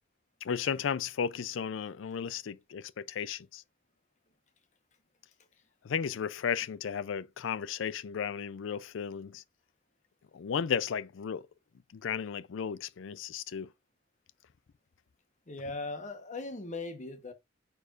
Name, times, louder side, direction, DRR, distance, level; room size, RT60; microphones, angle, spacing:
voice 1, 0.4-3.6 5.8-9.4 10.3-11.5 11.9-13.7, left 7 dB, 65° left, 0.4 m, -34 dB
voice 2, 15.5-17.3, left 3 dB, 35° left, 1.0 m, -39 dB
9.2 x 4.6 x 2.4 m
head